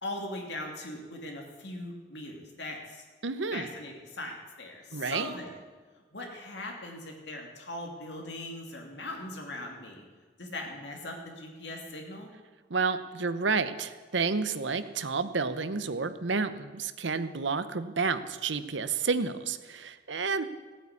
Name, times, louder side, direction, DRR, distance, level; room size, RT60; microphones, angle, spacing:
voice 1, 0.0-3.0 3.5-5.6 6.1-10.0 10.4-12.3, left 1 dB, 65° left, 1 dB, 2.8 m, -40 dB
voice 2, 3.2-3.7 4.9-5.3 12.7-20.4, right 4 dB, 75° right, 12 dB, 0.8 m, -30 dB
16.0 x 8.9 x 8.4 m, 1.4 s
head